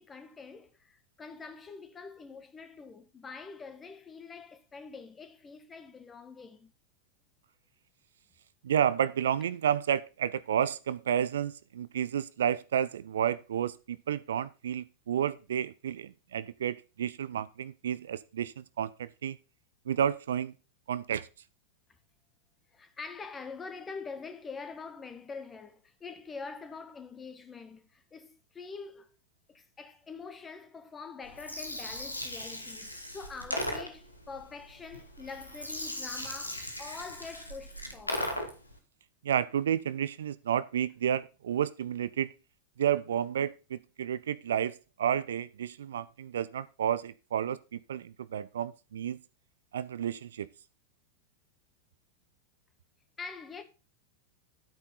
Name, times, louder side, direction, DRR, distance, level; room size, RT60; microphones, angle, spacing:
voice 1, 0.0-6.7 22.7-29.1 29.5-38.4 53.2-53.6, left 4 dB, 15° left, 1.7 m, -45 dB
voice 2, 8.6-19.4 19.9-20.5 20.9-21.3 39.2-42.3 42.8-49.2 49.7-50.5, right 9 dB, 65° right, 0.5 m, -31 dB
Gurgling, 31.2-38.7, left 1 dB, 85° left, 1.8 m, -38 dB
10.5 x 9.0 x 4.0 m
figure-of-eight pair, 90°, 0 cm